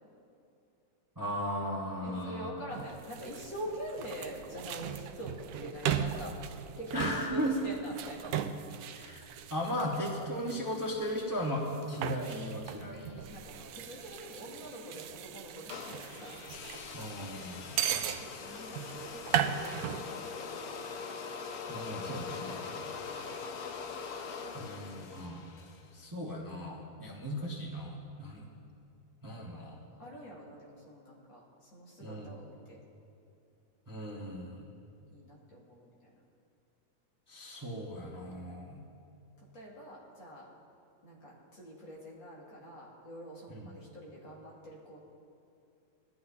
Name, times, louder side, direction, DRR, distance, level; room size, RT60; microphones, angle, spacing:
voice 1, 1.2-2.6 6.9-7.6 8.9-9.2 9.5-13.3 16.9-17.8 21.7-22.6 24.5-25.5 25.9-28.4 29.2-29.8 32.0-32.3 33.9-34.7 37.3-38.8 43.5-43.6, equal, 15° right, -2 dB, 1.0 m, -36 dB
voice 2, 2.0-6.4 6.8-8.4 13.3-16.4 18.1-20.9 22.7-23.5 27.0-27.3 29.2-29.7 30.0-32.8 35.1-36.1 39.5-40.5 41.0-45.0, equal, 80° left, -5 dB, 3.0 m, -45 dB
sound 1, 2.7-20.0, right 9 dB, 75° right, 0.9 m, -38 dB
sound 2, 15.7-25.9, left 5 dB, 65° left, 1.1 m, -42 dB
18.0 x 12.0 x 2.8 m, 2.6 s
omnidirectional pair, 2.0 m